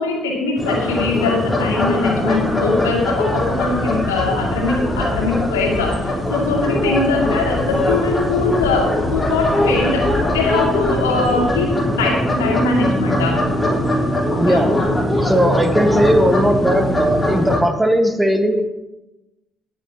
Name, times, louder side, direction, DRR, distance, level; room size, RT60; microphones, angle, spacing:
voice 1, 0.0-13.4 14.5-14.6, left 3 dB, 85° left, -1 dB, 2.3 m, -21 dB
sound 1, 0.6-17.6, left 1 dB, 20° left, 3.8 m, -21 dB
voice 2, 14.4-14.7 15.1-18.6, right 1 dB, 10° right, 6 dB, 1.5 m, -17 dB
19.0 x 7.8 x 2.9 m, 1.0 s
hypercardioid pair, 50°, 0 cm